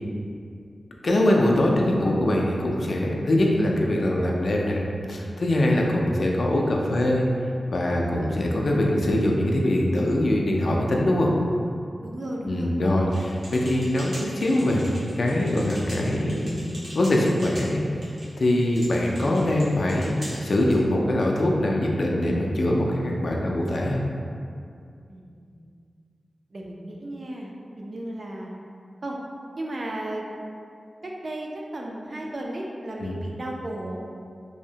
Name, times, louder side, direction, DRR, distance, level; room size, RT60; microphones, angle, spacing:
voice 1, 1.0-7.3 7.7-11.3 12.4-16.6 16.9-17.8 18.4-24.0 33.0-33.2, left 1 dB, 60° left, -1 dB, 0.3 m, -23 dB
voice 2, 12.0-12.7 13.0-13.1 25.1-25.8 26.5-28.5 29.0-29.2 29.5-30.3 31.0-34.0, right 1 dB, 45° right, -1 dB, 0.3 m, -34 dB
sound 1, 13.1-20.8, equal, 80° right, 0.8 m, -43 dB
2.7 x 2.0 x 2.7 m, 2.3 s
wide cardioid pair, 115°, 0 cm